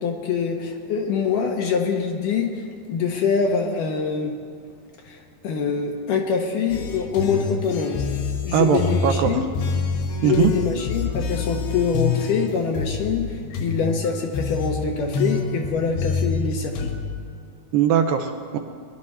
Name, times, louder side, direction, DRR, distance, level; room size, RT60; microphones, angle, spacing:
voice 1, 0.0-4.3 5.0-5.2 5.4-8.0 8.5-9.5 10.2-16.9, left 5 dB, 70° left, 3 dB, 2.2 m, -24 dB
sound 1, 6.7-17.2, left 5 dB, 90° left, 3.0 m, -27 dB
voice 2, 8.5-9.3 10.2-10.5 17.7-18.6, right 8 dB, 80° right, 6 dB, 2.2 m, -20 dB
21.0 x 11.0 x 4.3 m, 2.2 s
omnidirectional pair, 4.4 m